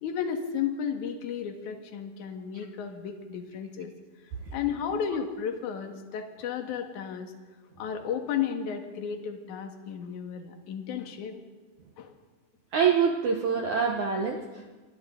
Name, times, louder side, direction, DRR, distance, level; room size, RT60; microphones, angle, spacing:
voice 1, 0.0-3.9 4.5-7.3 7.8-11.4 12.0-12.1, left 7 dB, 55° left, 4 dB, 2.5 m, -33 dB
voice 2, 12.7-14.7, right 6 dB, 80° right, 2 dB, 1.7 m, -26 dB
28.5 x 25.0 x 3.8 m, 1.3 s
omnidirectional pair, 5.3 m